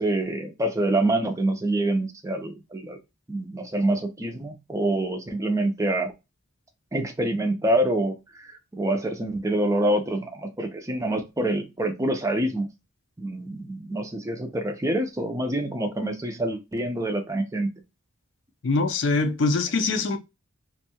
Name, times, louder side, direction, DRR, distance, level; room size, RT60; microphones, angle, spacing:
voice 1, 0.0-3.0 3.3-6.1 6.9-12.7 13.2-17.7, right 1 dB, 15° right, 0.4 m, -26 dB
voice 2, 18.6-20.2, left 3 dB, 60° left, 0.5 m, -23 dB
2.6 x 2.2 x 2.7 m
head